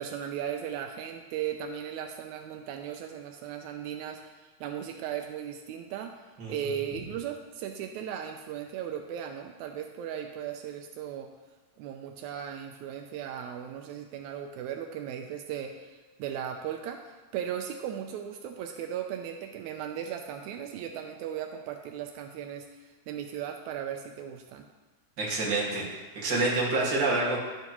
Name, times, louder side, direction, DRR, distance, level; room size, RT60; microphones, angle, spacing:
voice 1, 0.0-6.1 6.5-11.3 11.8-24.6, right 9 dB, 90° right, 4 dB, 1.6 m, -37 dB
voice 2, 25.2-25.9 26.2-27.4, right 2 dB, 40° right, -4 dB, 1.9 m, -27 dB
11.0 x 8.1 x 3.0 m, 1.3 s
omnidirectional pair, 3.9 m